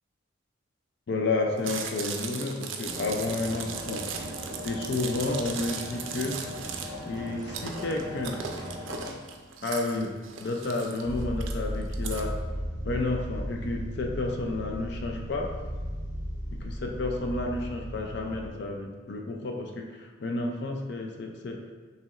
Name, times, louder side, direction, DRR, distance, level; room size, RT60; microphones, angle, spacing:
voice 1, 1.1-4.1 4.6-6.4 7.1-8.4 9.6-10.1 10.4-12.3 12.8-15.5 16.5-21.6, left 2 dB, 55° left, 2 dB, 0.4 m, -31 dB
Chewing mastication, 1.6-12.2, right 6 dB, 75° right, 0.4 m, -38 dB
sound 1, 2.9-9.1, equal, 20° right, 0.9 m, -39 dB
sound 2, 11.0-18.5, equal, 90° left, 0.8 m, -35 dB
5.7 x 2.9 x 2.4 m, 1.4 s
head